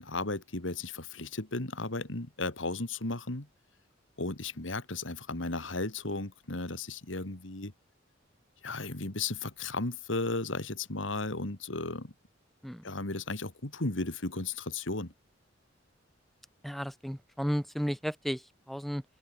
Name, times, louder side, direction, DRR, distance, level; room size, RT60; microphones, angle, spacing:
voice 1, 0.0-3.5 4.2-7.7 8.6-12.1 12.8-15.1, left 3 dB, 75° left, 2.5 m, -35 dB
voice 2, 16.6-19.0, equal, ahead, 1.9 m, -34 dB
open air
head